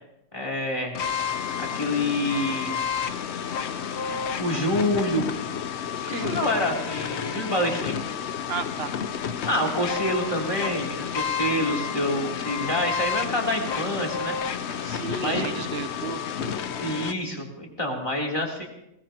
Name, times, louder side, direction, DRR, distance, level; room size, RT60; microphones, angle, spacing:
voice 1, 0.3-0.9 1.6-2.7 4.1-5.2 6.2-8.0 9.5-14.6 15.2-15.6 16.8-18.7, left 1 dB, 25° left, 0 dB, 3.5 m, -27 dB
sound 1, 0.9-17.1, left 7 dB, 65° left, 1.0 m, -30 dB
voice 2, 6.1-6.5 8.5-9.0 14.8-16.5, right 6 dB, 60° right, 9 dB, 1.1 m, -33 dB
21.0 x 20.0 x 3.0 m, 0.83 s
omnidirectional pair, 1.3 m